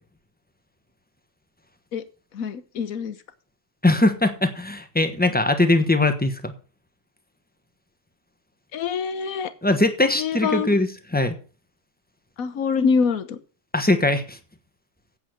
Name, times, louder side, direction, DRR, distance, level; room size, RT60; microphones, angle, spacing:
voice 1, 2.3-3.2 8.7-9.5 10.1-10.7 12.4-13.4, left 5 dB, 55° left, 13 dB, 1.3 m, -25 dB
voice 2, 3.8-6.5 9.6-10.9 11.1-11.3 13.7-14.4, left 2 dB, 5° left, 8 dB, 0.9 m, -20 dB
8.7 x 7.2 x 7.8 m, 0.37 s
omnidirectional pair, 1.9 m